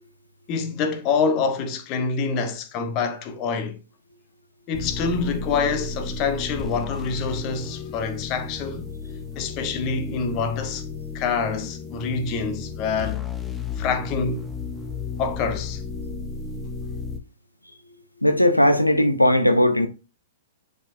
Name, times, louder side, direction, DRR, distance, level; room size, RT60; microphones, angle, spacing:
voice 1, 0.5-3.8 4.7-8.9 9.3-10.8 11.1-13.3 13.8-14.5 15.2-15.8, left 5 dB, 35° left, 1.3 m, -26 dB
sound 1, 4.7-17.2, left 5 dB, 10° left, 0.9 m, -33 dB
voice 2, 18.2-19.9, left 1 dB, 90° left, 0.8 m, -18 dB
10.0 x 5.1 x 2.7 m
figure-of-eight pair, 110°, 0 cm